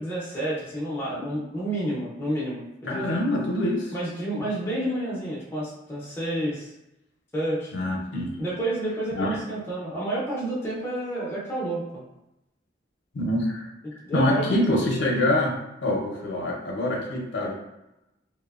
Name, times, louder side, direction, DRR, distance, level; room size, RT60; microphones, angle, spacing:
voice 1, 0.0-3.2 3.9-6.7 7.3-7.7 8.4-12.0 13.8-14.5, right 1 dB, 10° left, -7 dB, 0.5 m, -30 dB
voice 2, 2.9-3.9 4.4-4.5 7.7-8.3 9.2-9.4 13.1-13.7 14.1-15.5 15.8-17.5, left 1 dB, 65° left, -1 dB, 0.5 m, -25 dB
2.8 x 2.0 x 2.3 m, 0.93 s
head